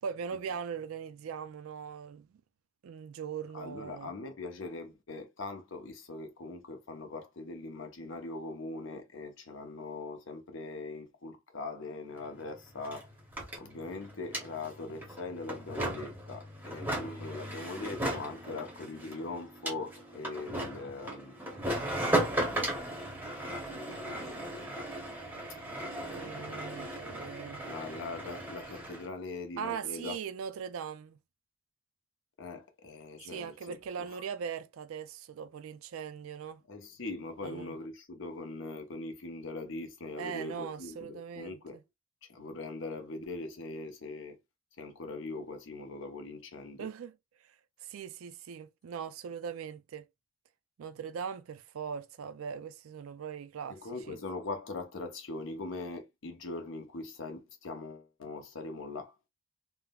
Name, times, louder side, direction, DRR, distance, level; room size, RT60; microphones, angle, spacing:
voice 1, 0.0-2.3 2.8-4.1 26.0-27.6 29.6-31.2 33.2-36.6 37.4-37.7 40.2-41.6 46.8-47.1 47.4-47.5 47.8-50.1 50.8-53.8 54.1-54.2, right 7 dB, 75° right, 0.3 m, -40 dB
voice 2, 3.5-13.1 13.5-21.6 21.9-22.7 23.6-24.7 25.7-26.8 27.1-27.2 27.7-30.2 32.4-34.2 36.7-41.8 42.2-44.4 44.8-46.9 53.7-59.2, left 3 dB, 60° left, 0.7 m, -41 dB
sound 1, 12.2-12.3 12.5-29.1, right 1 dB, 10° right, 0.7 m, -36 dB
3.5 x 2.0 x 2.2 m
head